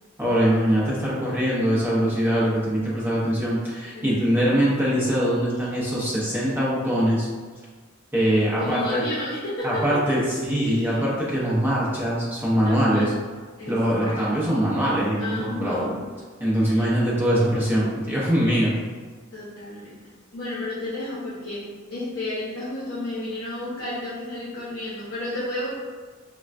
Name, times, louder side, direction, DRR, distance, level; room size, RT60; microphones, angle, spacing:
voice 1, 0.2-7.3 8.1-9.0 9.6-13.1 13.7-15.9 16.4-18.7, equal, 10° right, -8 dB, 0.6 m, -22 dB
voice 2, 3.9-4.7 8.6-9.8 10.6-11.0 12.6-13.1 13.6-14.5 15.2-16.1 16.6-16.9 19.3-20.0 20.3-25.7, left 1 dB, 60° left, -9 dB, 0.7 m, -32 dB
3.6 x 2.2 x 2.4 m, 1.5 s
head